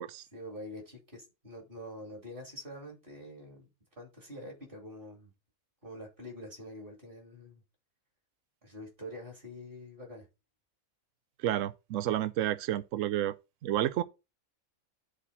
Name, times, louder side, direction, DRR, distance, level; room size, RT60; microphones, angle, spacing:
voice 1, 0.3-3.7 4.0-5.3 5.8-7.6 8.6-10.3, left 1 dB, 40° right, 2.9 m, -46 dB
voice 2, 11.4-13.3 13.6-14.0, right 12 dB, 70° right, 0.9 m, -30 dB
9.8 x 4.2 x 4.1 m
omnidirectional pair, 1.5 m